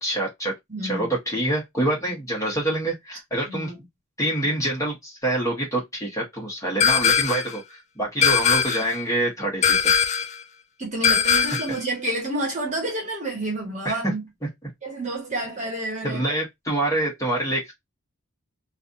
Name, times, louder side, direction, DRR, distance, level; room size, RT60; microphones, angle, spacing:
voice 1, 0.0-0.5 0.8-3.7 4.2-9.9 11.4-11.5 13.8-14.1 16.0-17.7, right 1 dB, 15° left, 1.5 m, -26 dB
voice 2, 0.7-1.1 3.4-3.8 10.8-14.2 14.8-16.2, right 2 dB, 35° right, 1.3 m, -29 dB
sound 1, 6.8-7.5 8.2-9.0 9.6-10.4 11.0-11.8, left 7 dB, 30° left, 0.4 m, -20 dB
3.2 x 2.6 x 2.6 m
head